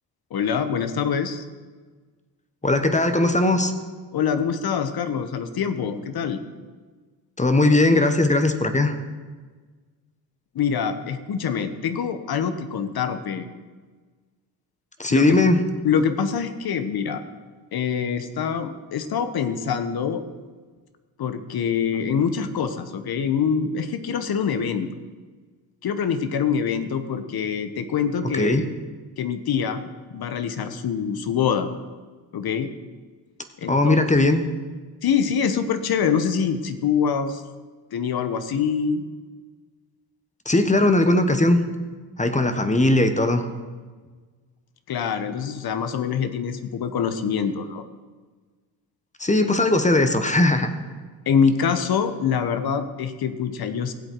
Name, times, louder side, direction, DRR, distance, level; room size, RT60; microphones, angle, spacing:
voice 1, 0.3-1.4 4.1-6.4 10.5-13.5 15.1-15.4 15.8-17.2 17.7-20.2 21.2-24.9 25.8-28.7 29.2-29.8 30.1-31.7 32.3-32.7 33.6-34.0 34.3-34.4 35.0-37.4 37.9-39.0 44.9-47.8 51.3-53.9, left 7 dB, 55° left, 10 dB, 1.1 m, -25 dB
voice 2, 2.6-3.7 7.4-8.9 15.0-15.6 28.4-28.6 33.7-34.4 40.4-41.6 42.2-43.5 49.2-50.7, left 2 dB, 15° left, 8 dB, 1.3 m, -19 dB
16.5 x 7.9 x 4.7 m, 1.4 s
supercardioid pair, 65°, 43 cm